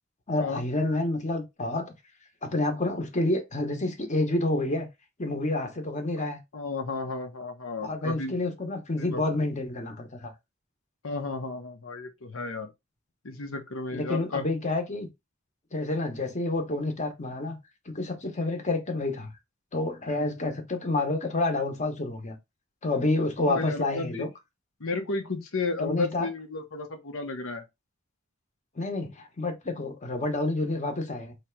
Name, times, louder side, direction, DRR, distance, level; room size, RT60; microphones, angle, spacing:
voice 1, 0.3-1.9 2.4-4.9 5.2-6.4 7.8-10.3 13.9-15.1 15.7-17.6 17.9-19.3 19.7-22.4 22.8-24.3 25.8-26.3 28.8-31.3, left 2 dB, 35° left, 1.0 m, -29 dB
voice 2, 6.5-8.3 9.0-9.2 11.0-12.7 13.2-14.4 18.4-18.5 20.1-20.3 23.4-24.3 24.8-27.6, left 3 dB, 85° left, 1.0 m, -33 dB
3.2 x 3.0 x 4.5 m
head